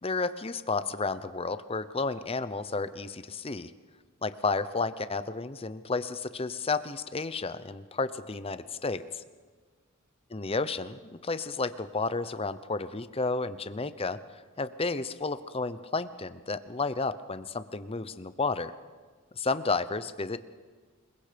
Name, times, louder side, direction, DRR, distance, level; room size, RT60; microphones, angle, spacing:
voice 1, 0.0-3.7 4.2-9.2 10.3-14.2 14.6-18.7 19.3-20.4, left 3 dB, 25° left, 13 dB, 0.8 m, -32 dB
27.5 x 22.5 x 5.2 m, 1.4 s
head